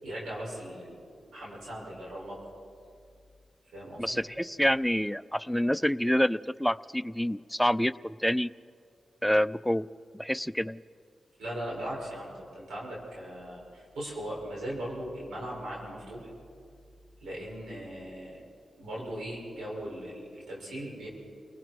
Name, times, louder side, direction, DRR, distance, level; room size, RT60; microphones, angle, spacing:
voice 1, 0.0-1.0 1.3-2.4 3.7-4.2 11.4-16.3 17.2-18.4 18.8-21.1, right 1 dB, 85° right, -4 dB, 7.1 m, -39 dB
voice 2, 4.0-8.5 9.2-9.9 10.1-10.8, equal, ahead, 14 dB, 0.5 m, -27 dB
29.0 x 20.0 x 4.8 m, 2.3 s
supercardioid pair, 40°, 0 cm